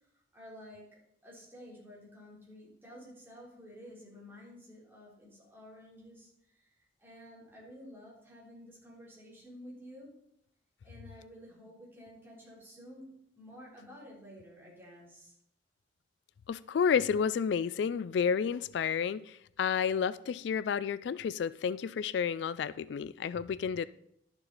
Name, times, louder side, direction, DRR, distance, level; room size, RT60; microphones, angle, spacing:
voice 1, 0.1-10.1 10.8-13.1 13.4-15.3, equal, 15° right, 3.5 m, -52 dB
voice 2, 16.5-23.9, left 7 dB, 75° left, 0.3 m, -31 dB
11.5 x 7.0 x 4.0 m
head